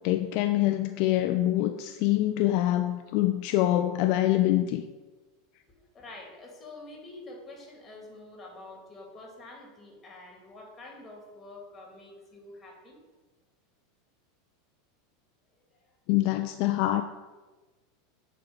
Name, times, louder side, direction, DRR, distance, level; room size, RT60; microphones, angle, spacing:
voice 1, 0.0-4.8 16.1-17.0, left 14 dB, 60° left, 8 dB, 0.3 m, -25 dB
voice 2, 5.8-13.0 15.7-15.8, left 2 dB, 20° left, -1 dB, 2.2 m, -47 dB
7.6 x 4.6 x 3.8 m, 1.2 s
supercardioid pair, 115°, 0 cm